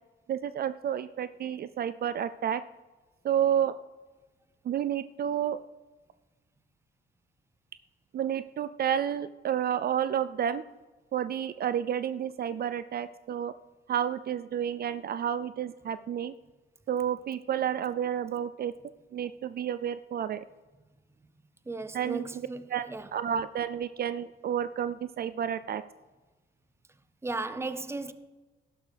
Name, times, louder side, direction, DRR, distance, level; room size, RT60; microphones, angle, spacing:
voice 1, 0.3-2.6 3.2-3.7 4.7-5.6 8.1-10.6 11.1-13.5 13.9-16.3 16.9-18.7 19.1-20.4 21.9-25.8, right 9 dB, 50° right, 0.4 m, -30 dB
voice 2, 21.7-23.1 27.2-28.1, right 3 dB, 15° right, 0.7 m, -36 dB
12.0 x 11.0 x 3.4 m
cardioid pair, 90°, 20 cm